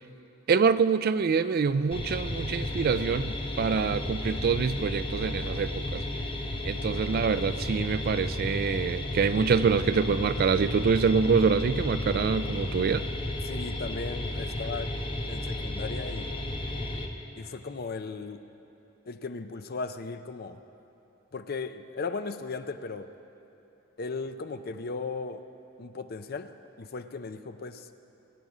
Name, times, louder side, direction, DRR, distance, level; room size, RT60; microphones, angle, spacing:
voice 1, 0.5-6.0 6.6-13.0, right 5 dB, 45° right, 14 dB, 0.3 m, -25 dB
sound 1, 1.9-17.1, left 1 dB, 25° left, 1.0 m, -33 dB
voice 2, 13.4-14.9 15.3-16.3 17.4-18.4 19.1-20.6 21.3-23.1 24.0-25.4 25.8-27.9, left 4 dB, 45° left, 10 dB, 0.5 m, -36 dB
21.0 x 9.2 x 4.9 m, 2.9 s
head